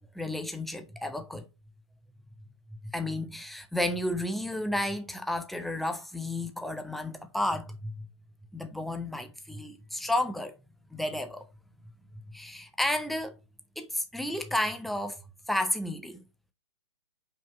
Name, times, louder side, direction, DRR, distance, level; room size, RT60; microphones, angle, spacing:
voice 1, 0.1-1.5 2.8-8.1 8.5-10.6 10.9-11.5 12.3-13.3 13.8-15.2 15.5-16.2, left 1 dB, ahead, 0.8 m, -32 dB
5.6 x 4.4 x 4.4 m
figure-of-eight pair, 120°, 14 cm